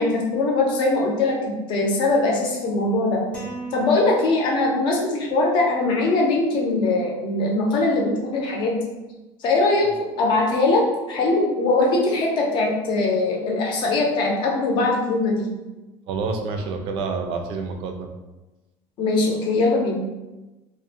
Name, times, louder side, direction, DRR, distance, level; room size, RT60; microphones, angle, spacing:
voice 1, 0.0-3.2 3.7-8.8 9.4-15.5 19.0-20.0, left 2 dB, 50° left, -1 dB, 0.6 m, -21 dB
sound 1, 3.3-4.8, right 2 dB, 10° left, 0.8 m, -37 dB
voice 2, 16.1-18.1, right 4 dB, 60° right, 4 dB, 0.4 m, -28 dB
2.5 x 2.1 x 2.7 m, 1.1 s
cardioid pair, 140°, 10 cm